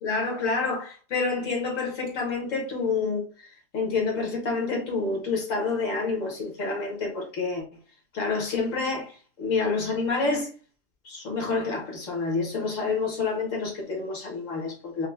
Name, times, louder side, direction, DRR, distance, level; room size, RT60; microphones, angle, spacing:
voice 1, 0.0-3.5 3.7-7.6 8.1-10.5 11.0-15.1, left 4 dB, 70° left, 1.4 m, -28 dB
5.3 x 2.1 x 2.3 m
omnidirectional pair, 1.4 m